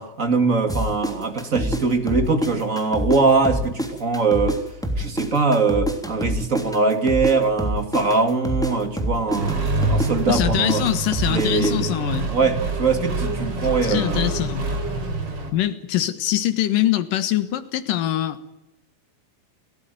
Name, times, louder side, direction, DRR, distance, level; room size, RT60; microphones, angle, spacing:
voice 1, 0.0-4.6 5.0-10.8 11.3-14.4, right 4 dB, 25° right, 7 dB, 2.3 m, -22 dB
sound 1, 0.7-3.2 3.4-7.3 7.6-11.7, equal, ahead, 2.7 m, -26 dB
Accelerating revving vroom, 9.3-15.5, right 3 dB, 45° right, 4.5 m, -26 dB
voice 2, 10.3-12.3 13.8-14.7 15.5-18.4, left 13 dB, 90° left, 12 dB, 3.1 m, -23 dB
30.0 x 14.5 x 9.3 m, 0.94 s
omnidirectional pair, 3.7 m